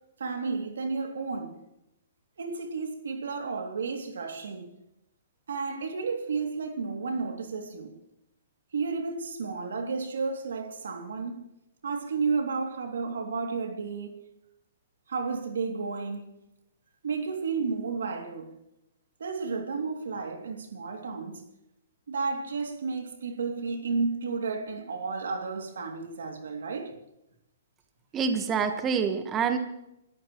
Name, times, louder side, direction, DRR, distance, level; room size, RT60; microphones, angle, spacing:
voice 1, 0.2-1.6 2.4-4.7 5.5-7.9 8.7-11.4 11.8-14.2 15.1-16.4 17.0-18.6 19.2-21.4 22.1-27.0, right 4 dB, 85° right, 2.5 m, -32 dB
voice 2, 28.1-29.6, right 6 dB, 20° right, 1.2 m, -26 dB
28.0 x 13.5 x 3.1 m
hypercardioid pair, 140°, 0 cm